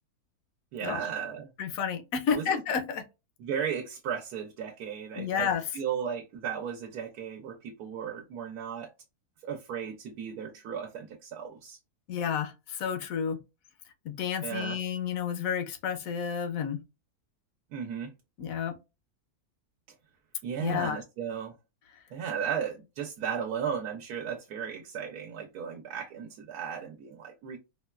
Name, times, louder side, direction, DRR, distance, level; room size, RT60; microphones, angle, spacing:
voice 1, 0.7-1.5 2.3-2.6 3.4-5.5 5.7-8.9 9.4-11.8 14.4-14.8 17.7-18.1 20.4-21.5 22.1-27.6, right 7 dB, 90° right, 1.1 m, -35 dB
voice 2, 1.6-3.0 5.2-5.6 12.1-13.4 14.0-16.8 18.4-18.8 20.6-21.0, left 7 dB, 75° left, 1.0 m, -31 dB
4.3 x 2.2 x 2.3 m
omnidirectional pair, 1.6 m